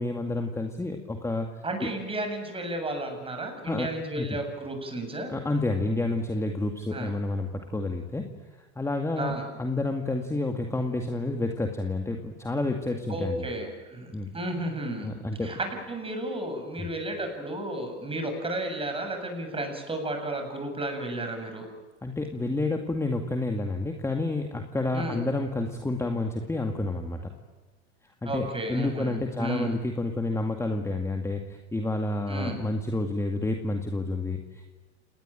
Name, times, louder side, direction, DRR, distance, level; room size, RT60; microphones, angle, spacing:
voice 1, 0.0-1.9 3.7-3.9 4.2-4.3 5.3-8.3 8.8-9.3 9.6-13.4 14.1-14.3 15.0-15.6 22.0-27.2 28.2-34.7, left 2 dB, 10° left, 4 dB, 2.2 m, -29 dB
voice 2, 1.6-5.3 6.9-7.1 9.2-9.5 13.1-15.1 15.4-21.7 24.9-25.2 28.2-29.8 32.3-32.7, right 1 dB, 15° right, 5 dB, 7.7 m, -33 dB
29.0 x 19.5 x 9.1 m, 1.3 s
hypercardioid pair, 95°, 36 cm